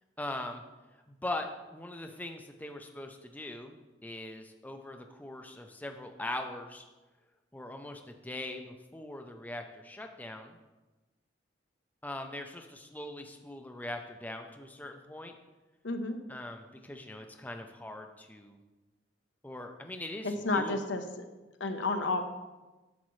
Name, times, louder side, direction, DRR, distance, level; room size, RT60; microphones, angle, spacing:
voice 1, 0.2-0.6 1.1-3.8 4.0-6.8 7.5-10.6 12.0-15.4 16.3-18.6 19.4-20.7, left 1 dB, 10° left, 4 dB, 0.5 m, -41 dB
voice 2, 15.8-16.2 20.2-21.2 21.6-22.2, left 2 dB, 75° left, 6 dB, 0.9 m, -31 dB
10.5 x 7.3 x 3.2 m, 1.1 s
head